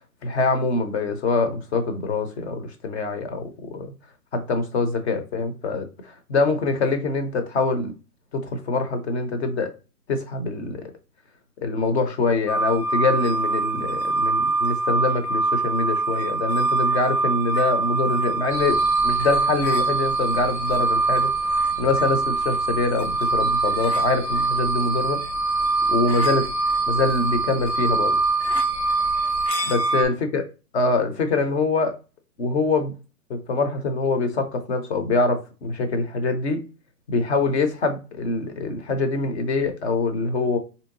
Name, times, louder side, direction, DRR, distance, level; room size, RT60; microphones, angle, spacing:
voice 1, 0.2-3.9 4.3-7.9 8.3-9.7 10.1-10.9 11.6-25.2 25.9-26.5 26.9-28.2 29.7-30.4 30.7-32.0 32.4-32.9 33.3-36.6 37.1-40.6, left 3 dB, 45° left, 0.8 m, -24 dB
sound 1, 12.5-30.0, right 3 dB, 75° left, 0.9 m, -23 dB
sound 2, 18.5-29.5, equal, 5° right, 0.6 m, -39 dB
4.4 x 2.8 x 2.6 m
hypercardioid pair, 155°, 48 cm